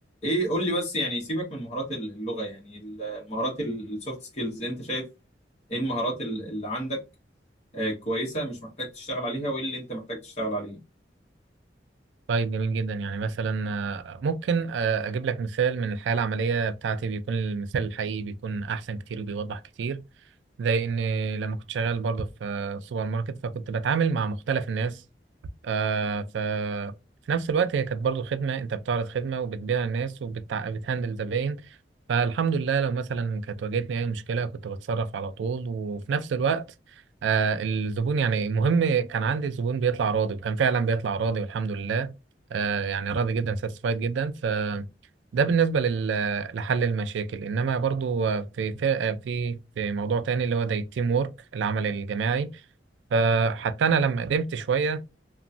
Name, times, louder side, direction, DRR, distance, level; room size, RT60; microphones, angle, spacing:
voice 1, 0.2-5.0 5.7-7.0 7.7-10.8, right 1 dB, 40° left, 1.0 m, -30 dB
voice 2, 12.3-20.0 20.6-25.0 25.6-26.9 27.3-31.6 32.1-36.7 37.2-42.1 42.5-44.9 45.3-52.5 53.1-55.0, right 5 dB, 85° right, 0.4 m, -27 dB
2.9 x 2.2 x 2.5 m
head